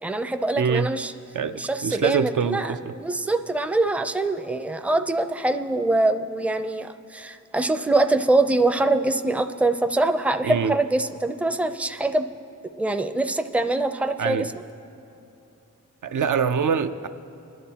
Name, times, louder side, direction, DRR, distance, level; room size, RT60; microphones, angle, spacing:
voice 1, 0.0-1.1 1.5-12.3 12.8-14.5, right 2 dB, 5° right, 8 dB, 0.4 m, -24 dB
voice 2, 0.6-0.9 1.3-2.8 10.4-10.7 14.2-14.5 16.0-17.1, right 6 dB, 75° right, 9 dB, 0.5 m, -24 dB
22.0 x 11.0 x 2.9 m, 2.9 s
wide cardioid pair, 70°, 31 cm